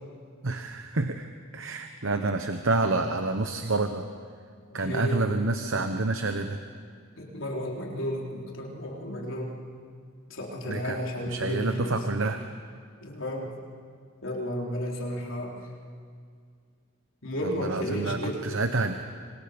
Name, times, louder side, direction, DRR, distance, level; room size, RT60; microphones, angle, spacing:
voice 1, 0.4-4.1 4.7-6.6 10.7-11.0 11.2-12.4 17.4-18.9, right 3 dB, 75° right, 7 dB, 1.0 m, -28 dB
voice 2, 4.7-5.3 7.1-9.5 10.3-12.0 13.0-13.5 14.2-15.7 17.2-18.6, equal, 75° left, -2 dB, 3.9 m, -33 dB
26.0 x 26.0 x 5.2 m, 2.1 s
head